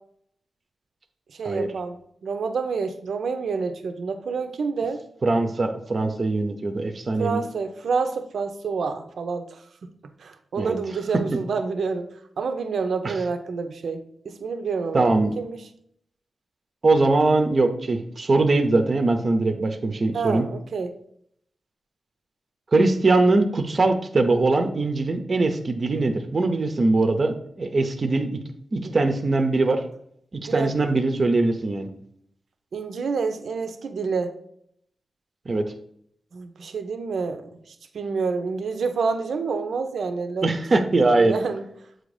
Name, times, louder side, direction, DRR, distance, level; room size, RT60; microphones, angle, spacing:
voice 1, 1.4-2.0 2.2-5.0 7.2-9.6 10.2-12.1 12.4-15.1 15.4-15.6 20.1-20.9 28.8-29.0 30.5-30.7 32.7-34.3 36.3-37.5 37.9-40.5 41.2-41.6, right 5 dB, 85° right, 7 dB, 0.5 m, -28 dB
voice 2, 5.2-7.4 10.6-10.8 13.0-13.1 14.9-15.3 16.8-20.5 22.7-28.4 28.7-29.8 30.5-31.9 35.5-35.6 40.4-41.3, right 2 dB, 40° right, 7 dB, 0.5 m, -21 dB
7.7 x 2.6 x 4.8 m, 0.70 s
wide cardioid pair, 125°, 0 cm